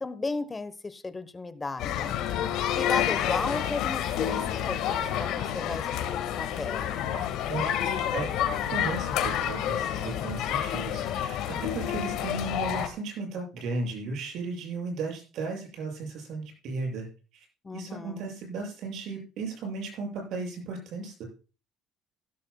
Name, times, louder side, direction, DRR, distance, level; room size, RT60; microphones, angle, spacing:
voice 1, 0.0-2.1 2.7-6.9 17.6-18.3, left 3 dB, 20° left, 13 dB, 1.1 m, -35 dB
sound 1, 1.8-12.9, left 10 dB, 75° left, 1.8 m, -29 dB
voice 2, 8.7-17.1 17.3-17.4 17.7-21.2, right 3 dB, 65° right, 1 dB, 7.0 m, -35 dB
16.0 x 12.5 x 2.3 m, 0.33 s
cardioid pair, 110°, 0 cm